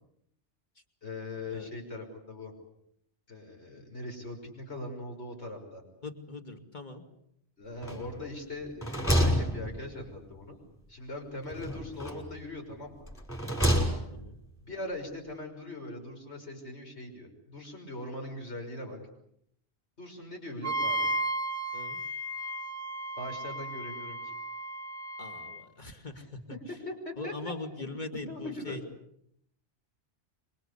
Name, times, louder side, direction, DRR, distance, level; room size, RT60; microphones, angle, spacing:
voice 1, 1.0-2.5 3.3-5.8 7.6-10.6 10.9-13.0 14.6-19.0 20.0-21.1 23.2-24.2 26.1-26.2 26.7-27.9 28.3-28.8, left 2 dB, 75° left, 3 dB, 6.3 m, -41 dB
voice 2, 6.0-7.0 14.1-14.4 21.7-22.0 25.2-26.4 27.2-28.8, left 2 dB, 45° left, 5 dB, 3.0 m, -41 dB
sound 1, 7.8-8.3 8.6-10.2 11.5-12.4 13.1-14.3, equal, 10° left, 5.9 m, -29 dB
Wind instrument woodwind instrument, 20.6-25.6, right 1 dB, 15° right, 1.4 m, -34 dB
27.5 x 24.0 x 8.4 m, 0.74 s
omnidirectional pair, 1.1 m